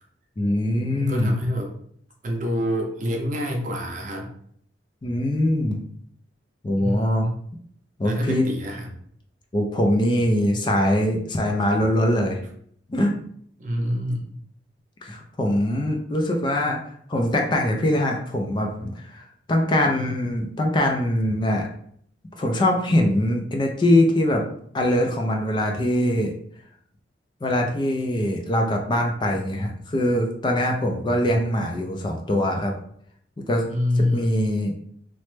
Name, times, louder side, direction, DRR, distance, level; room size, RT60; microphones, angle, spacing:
voice 1, 0.4-1.3 5.0-5.8 6.6-7.3 8.0-8.5 9.5-12.4 12.9-13.1 15.0-16.8 17.1-21.7 22.4-24.4 24.7-26.3 27.4-32.7 33.5-33.7 34.1-34.7, left 1 dB, 25° left, 2 dB, 0.3 m, -22 dB
voice 2, 0.9-1.7 2.2-4.3 6.8-7.4 8.0-8.9 13.6-14.3 33.7-34.2, left 1 dB, 45° right, 1 dB, 0.6 m, -26 dB
3.1 x 2.0 x 3.1 m, 0.65 s
head